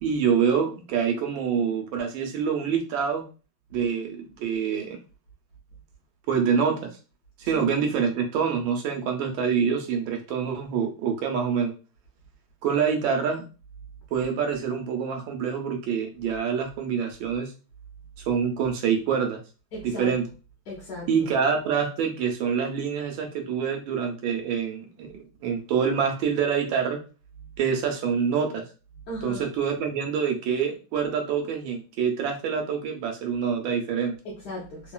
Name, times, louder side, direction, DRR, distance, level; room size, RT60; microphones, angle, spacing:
voice 1, 0.0-3.2 3.7-5.0 6.3-6.9 7.4-11.7 12.6-13.4 14.1-17.5 18.3-19.4 19.8-20.3 21.1-27.0 27.6-28.7 29.2-34.1, right 6 dB, 75° right, 1.3 m, -26 dB
voice 2, 19.7-20.1 20.7-21.1 29.1-29.5 34.2-34.9, equal, 60° left, 1.2 m, -36 dB
3.6 x 2.3 x 2.2 m
omnidirectional pair, 2.3 m